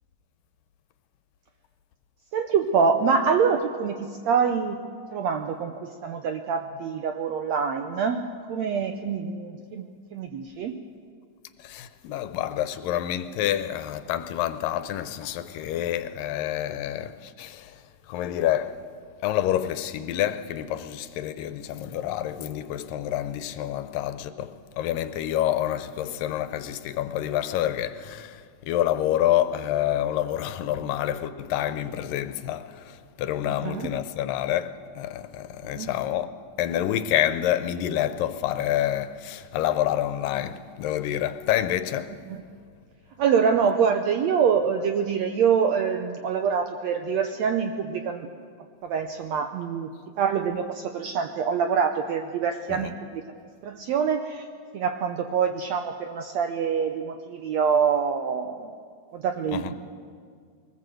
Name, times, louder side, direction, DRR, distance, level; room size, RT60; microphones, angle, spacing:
voice 1, 2.3-4.8 5.1-10.8 33.4-34.0 35.6-35.9 42.3-42.4 43.2-48.3 48.8-49.9 50.2-53.2 53.6-54.5 54.7-58.7 59.1-59.7, right 6 dB, 75° right, 1.6 m, -25 dB
voice 2, 11.6-17.8 18.1-18.8 19.2-34.7 35.0-36.3 36.6-42.1 52.7-52.9 59.5-59.7, left 12 dB, 80° left, 2.4 m, -28 dB
22.5 x 19.0 x 7.8 m
omnidirectional pair, 4.0 m